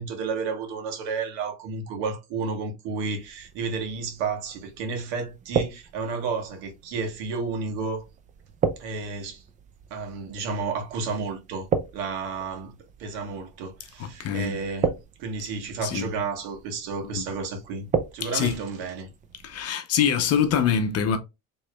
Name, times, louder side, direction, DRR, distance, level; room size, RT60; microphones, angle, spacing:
voice 1, 0.0-8.0 8.8-9.4 9.9-11.7 11.9-14.9 15.2-17.9 18.1-19.1, right 4 dB, 80° right, 1.4 m, -31 dB
sound 1, 2.9-19.7, right 6 dB, 20° right, 0.3 m, -35 dB
voice 2, 14.0-14.6 15.8-16.1 17.1-17.2 18.2-18.6 19.4-21.2, left 7 dB, 40° left, 0.7 m, -24 dB
4.6 x 3.1 x 2.2 m
cardioid pair, 140°, 39 cm